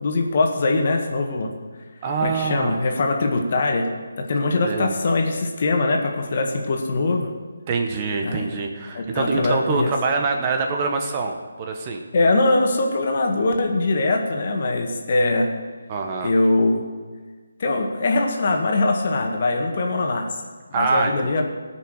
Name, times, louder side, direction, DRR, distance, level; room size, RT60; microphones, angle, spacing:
voice 1, 0.0-1.5 2.2-3.9 4.2-7.3 8.2-8.5 8.9-9.9 12.1-15.5 16.2-16.8 17.6-20.3 20.7-21.4, left 2 dB, 45° left, 2 dB, 1.8 m, -22 dB
voice 2, 2.0-2.8 4.6-5.0 7.7-12.0 15.9-16.3 20.7-21.3, right 4 dB, 30° right, 3 dB, 1.2 m, -25 dB
17.0 x 6.1 x 6.4 m, 1.5 s
figure-of-eight pair, 155°, 0 cm